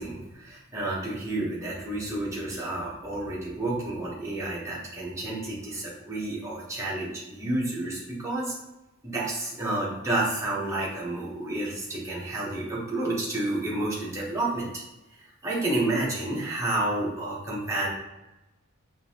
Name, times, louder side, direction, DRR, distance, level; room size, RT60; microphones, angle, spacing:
voice 1, 0.0-8.6 9.0-14.8 15.2-17.9, right 2 dB, 15° right, -6 dB, 1.0 m, -30 dB
5.3 x 2.6 x 2.8 m, 1.0 s
head